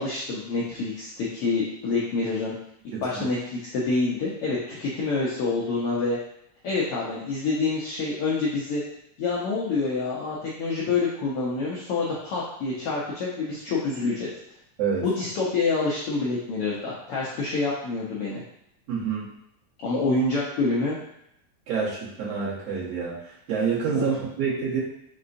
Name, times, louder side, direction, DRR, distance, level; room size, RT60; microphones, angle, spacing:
voice 1, 0.0-2.5 3.0-6.2 6.6-8.8 9.2-14.3 15.0-18.4 19.8-21.0 23.9-24.2, left 3 dB, 75° left, -5 dB, 1.3 m, -27 dB
voice 2, 2.9-3.2 14.8-15.1 18.9-19.3 21.7-24.8, right 6 dB, 65° right, -7 dB, 2.2 m, -28 dB
5.3 x 3.7 x 2.6 m, 0.78 s
omnidirectional pair, 3.4 m